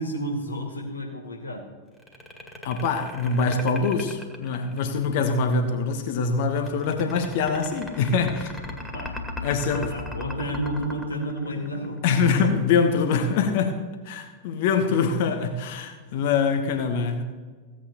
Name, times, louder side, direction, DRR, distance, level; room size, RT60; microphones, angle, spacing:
voice 1, 0.0-1.7 8.9-9.3 9.7-12.0, right 1 dB, 75° left, 0 dB, 2.0 m, -31 dB
sound 1, 2.0-5.1 6.6-12.1, left 2 dB, 5° left, 2.0 m, -37 dB
voice 2, 2.6-8.5 9.4-9.9 12.0-17.2, left 5 dB, 50° left, 6 dB, 1.1 m, -24 dB
16.0 x 8.8 x 3.0 m, 1.4 s
figure-of-eight pair, 90°, 0 cm